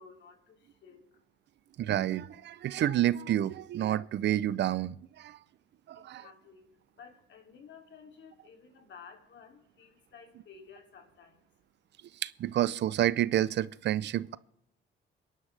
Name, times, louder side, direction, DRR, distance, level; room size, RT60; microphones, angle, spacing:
voice 1, 0.0-1.8 5.3-12.2, left 6 dB, 65° left, 2.7 m, -55 dB
voice 2, 1.8-5.4 5.9-6.2 12.1-14.4, right 12 dB, 60° right, 0.5 m, -29 dB
24.0 x 11.0 x 3.3 m
cardioid pair, 90°, 20 cm